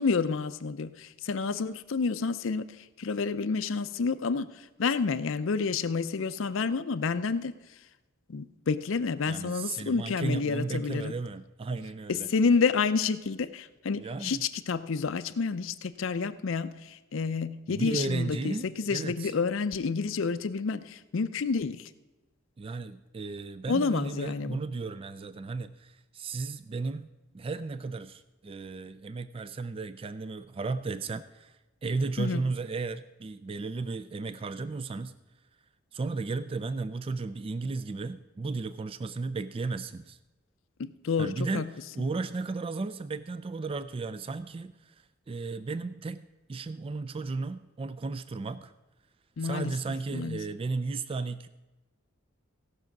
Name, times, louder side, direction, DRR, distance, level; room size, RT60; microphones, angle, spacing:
voice 1, 0.0-7.5 8.3-11.2 12.1-21.9 23.7-24.6 32.2-32.4 40.8-41.7 49.4-49.7 50.1-50.4, left 5 dB, 65° left, 11 dB, 0.5 m, -29 dB
voice 2, 9.3-12.3 14.0-14.4 17.7-19.3 22.6-27.1 27.3-31.6 31.8-35.1 35.9-40.2 41.2-44.9 45.3-48.7 49.4-51.5, right 3 dB, 25° right, 13 dB, 0.3 m, -34 dB
16.0 x 6.2 x 5.9 m, 1.1 s
head